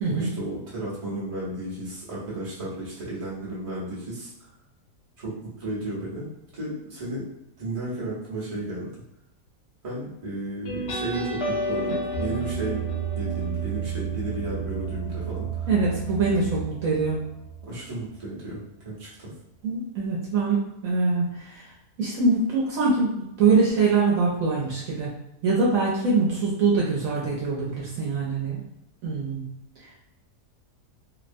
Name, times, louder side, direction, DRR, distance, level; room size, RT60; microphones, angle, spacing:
voice 1, 0.1-4.3 5.2-6.3 6.5-7.3 7.6-8.9 9.8-12.8 13.1-15.7 17.6-19.3, right 1 dB, 30° right, -7 dB, 0.6 m, -33 dB
sound 1, 10.6-17.8, right 4 dB, 55° left, 0.7 m, -31 dB
voice 2, 15.7-17.2 19.6-21.6 22.0-25.1 25.4-28.6 29.0-29.5, right 4 dB, 65° right, -5 dB, 0.9 m, -23 dB
2.8 x 2.1 x 2.5 m, 0.84 s
omnidirectional pair, 1.8 m